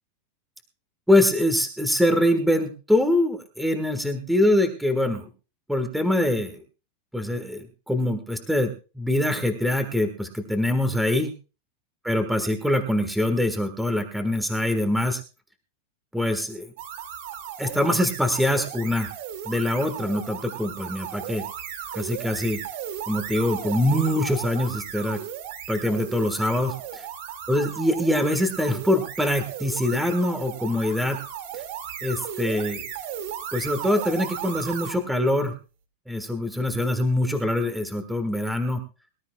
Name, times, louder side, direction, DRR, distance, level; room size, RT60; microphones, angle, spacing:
voice 1, 1.1-5.3 5.7-6.6 7.1-11.3 12.0-15.2 16.1-16.7 17.6-19.1 19.4-21.4 21.9-22.6 23.1-25.2 25.7-27.1 27.5-31.2 32.0-32.9 33.5-35.5 36.1-38.8, left 1 dB, ahead, 7 dB, 1.5 m, -24 dB
sound 1, 16.8-35.0, right 9 dB, 65° right, 2.3 m, -36 dB
23.0 x 13.0 x 2.3 m, 0.33 s
supercardioid pair, 155°, 0 cm